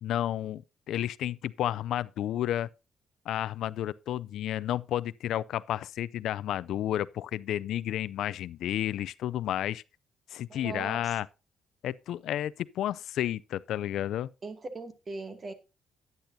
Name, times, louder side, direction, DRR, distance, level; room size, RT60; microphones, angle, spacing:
voice 1, 0.0-2.7 3.3-9.8 10.3-11.3 11.8-14.3, left 12 dB, 80° left, 0.4 m, -31 dB
voice 2, 10.5-11.1 14.4-15.5, right 3 dB, 35° right, 2.2 m, -39 dB
10.5 x 10.5 x 2.7 m
cardioid pair, 90°, 0 cm